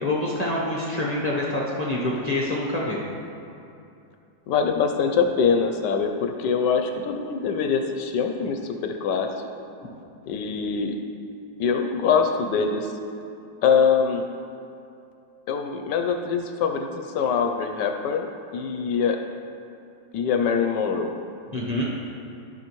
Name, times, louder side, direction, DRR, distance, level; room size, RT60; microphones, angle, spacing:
voice 1, 0.0-3.0 21.5-21.8, left 1 dB, 40° left, -5 dB, 0.5 m, -26 dB
voice 2, 4.5-9.3 10.3-11.0 11.6-12.9 13.6-14.2 15.5-18.3 18.5-19.2 20.1-21.1, left 6 dB, 75° left, 5 dB, 1.1 m, -23 dB
14.0 x 5.6 x 3.0 m, 2.7 s
omnidirectional pair, 2.0 m